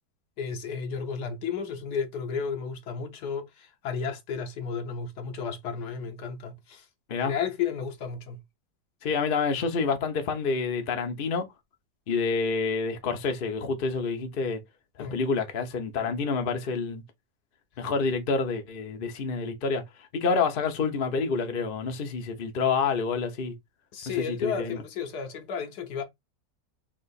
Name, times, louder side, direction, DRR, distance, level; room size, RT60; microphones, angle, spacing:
voice 1, 0.4-6.9 7.2-8.4 15.0-15.2 23.9-26.0, left 6 dB, 70° left, 1.3 m, -33 dB
voice 2, 9.0-11.5 12.1-14.6 15.1-17.0 17.8-19.8 20.1-23.5 24.4-24.8, left 4 dB, 45° left, 0.7 m, -28 dB
3.4 x 2.9 x 4.0 m
omnidirectional pair, 1.9 m